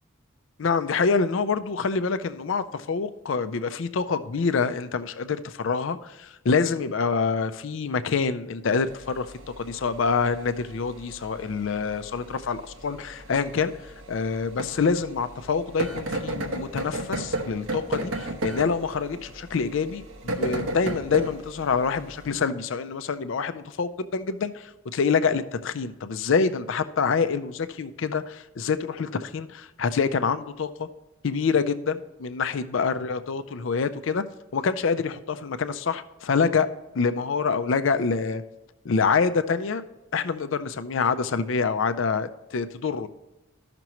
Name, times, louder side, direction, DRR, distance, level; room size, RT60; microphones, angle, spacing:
voice 1, 0.6-30.9 31.2-34.2 34.5-36.7 36.9-38.4 38.8-39.8 40.1-43.1, left 5 dB, 70° left, 11 dB, 0.5 m, -26 dB
sound 1, 8.8-22.3, right 1 dB, 85° right, 1.1 m, -35 dB
14.0 x 5.9 x 3.0 m, 1.0 s
head